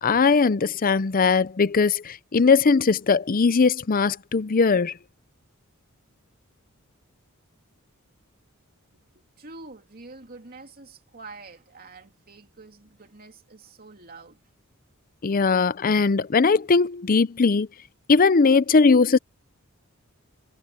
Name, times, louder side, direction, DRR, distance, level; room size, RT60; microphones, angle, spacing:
voice 1, 0.0-4.9 15.2-17.7 18.1-19.2, left 4 dB, 40° left, 0.6 m, -19 dB
voice 2, 9.1-14.4, right 3 dB, 45° right, 3.0 m, -46 dB
head